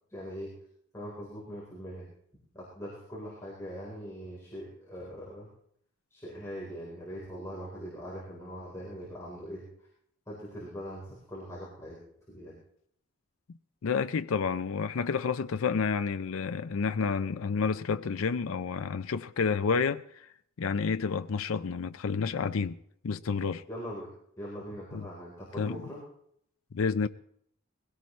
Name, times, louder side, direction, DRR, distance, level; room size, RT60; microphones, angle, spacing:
voice 1, 0.1-0.5 0.9-2.1 2.5-5.5 6.1-9.6 10.3-12.0 12.3-12.6 23.7-24.1 24.4-26.1, equal, 15° left, 3.9 m, -41 dB
voice 2, 13.8-22.8 23.0-23.6 24.9-25.1 25.6-25.8 26.7-27.1, left 5 dB, 75° left, 0.5 m, -30 dB
20.5 x 16.5 x 3.2 m
head